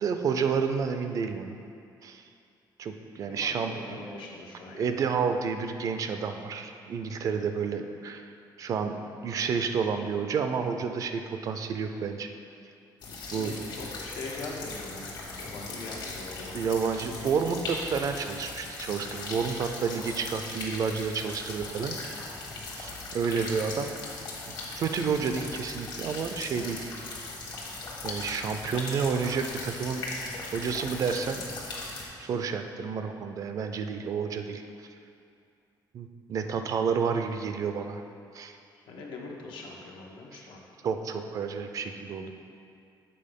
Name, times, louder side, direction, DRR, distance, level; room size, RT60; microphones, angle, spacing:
voice 1, 0.0-1.6 2.0-2.2 2.8-4.0 4.7-8.3 8.6-9.0 9.2-12.3 13.3-13.6 16.5-22.0 22.8-24.2 24.5-26.9 28.0-30.0 30.5-31.4 32.2-34.6 35.9-38.0 38.3-38.6 40.8-42.3, right 6 dB, 45° right, 7 dB, 0.4 m, -30 dB
voice 2, 3.2-4.9 13.1-16.6 22.5-22.7 38.9-40.6, left 3 dB, 90° left, -1 dB, 1.1 m, -42 dB
sound 1, 13.0-32.0, left 3 dB, 60° left, 1.3 m, -39 dB
7.6 x 4.2 x 5.2 m, 2.5 s
cardioid pair, 180°, 8 cm